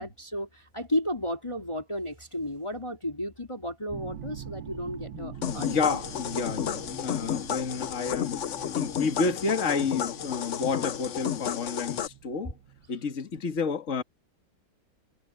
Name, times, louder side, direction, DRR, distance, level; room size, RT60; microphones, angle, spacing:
voice 1, 0.0-6.0, left 1 dB, 15° left, 3.4 m, -33 dB
sound 1, 3.9-12.9, right 10 dB, 75° right, 1.7 m, -45 dB
voice 2, 5.1-8.4 8.6-12.5 12.9-14.0, left 5 dB, 35° left, 2.1 m, -30 dB
sound 2, 5.4-12.1, left 9 dB, 70° left, 0.7 m, -32 dB
omnidirectional pair, 2.3 m